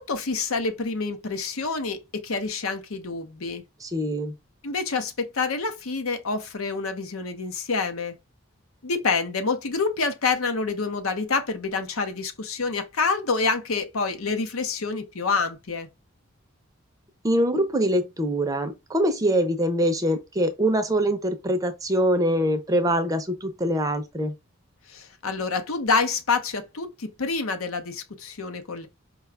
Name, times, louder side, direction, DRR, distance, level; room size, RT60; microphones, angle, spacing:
voice 1, 0.0-3.6 4.6-8.1 8.8-15.9 24.9-28.9, left 4 dB, 80° left, 0.7 m, -27 dB
voice 2, 3.8-4.3 17.2-24.3, equal, 15° right, 0.5 m, -24 dB
4.7 x 2.3 x 3.3 m
head